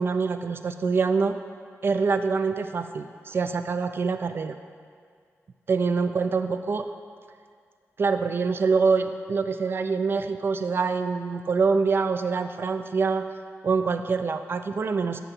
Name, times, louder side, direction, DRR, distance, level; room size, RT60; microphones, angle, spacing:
voice 1, 0.0-1.3 1.8-4.5 5.7-6.9 8.0-13.2 13.6-15.2, right 4 dB, 45° right, 9 dB, 0.3 m, -25 dB
8.3 x 7.1 x 5.3 m, 2.1 s
wide cardioid pair, 165°, 5 cm